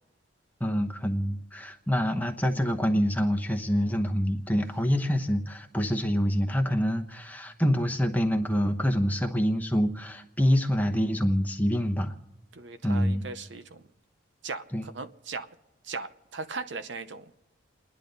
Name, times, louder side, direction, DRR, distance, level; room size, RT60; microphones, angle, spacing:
voice 1, 0.6-12.2 12.8-13.2 14.7-14.9, equal, 10° left, 0.9 m, -26 dB
voice 2, 12.5-13.8 14.4-15.5 15.8-17.4, right 4 dB, 60° right, 0.8 m, -38 dB
29.5 x 10.5 x 4.0 m
head